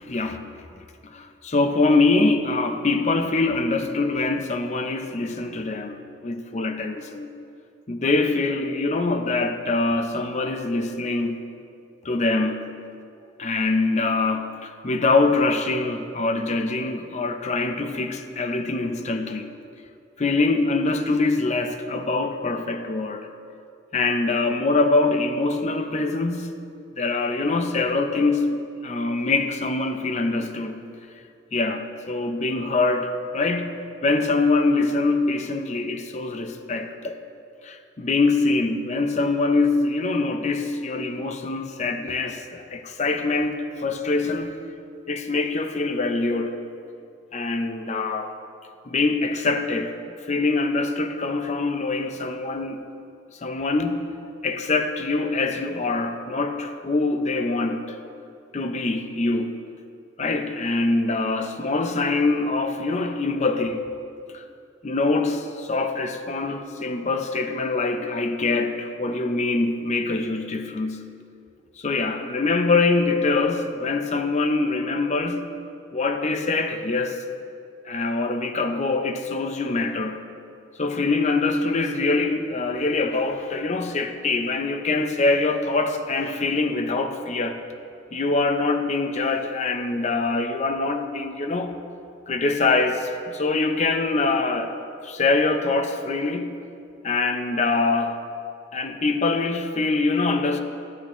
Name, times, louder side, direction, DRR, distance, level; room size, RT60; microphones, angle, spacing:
voice 1, 0.1-0.5 1.0-7.3 7.9-11.4 12.0-12.7 13.4-19.5 20.2-23.3 23.9-26.5 27.0-28.6 28.8-30.8 31.5-33.7 34.0-37.2 37.6-44.6 45.1-46.6 47.3-48.3 48.9-50.0 50.3-52.8 53.4-54.0 54.4-58.0 58.5-59.6 60.2-63.9 64.3-64.4 64.8-71.1 71.8-75.4 75.9-77.2 77.8-80.2 80.8-87.6 88.1-91.7 92.3-96.5 97.0-98.2 98.7-100.6, left 3 dB, 35° left, 0.6 m, -24 dB
13.5 x 8.2 x 3.1 m
head